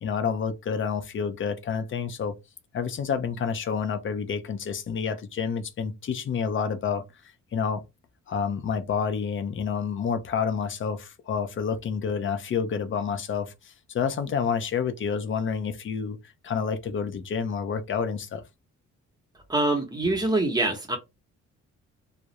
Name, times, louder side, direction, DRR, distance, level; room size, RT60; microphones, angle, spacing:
voice 1, 0.0-2.4 2.7-7.0 7.5-7.8 8.3-16.2 16.4-18.4, left 6 dB, 40° left, 0.5 m, -29 dB
voice 2, 19.5-21.0, right 2 dB, 15° right, 0.8 m, -24 dB
2.3 x 2.0 x 2.9 m
cardioid pair, 90°, 30 cm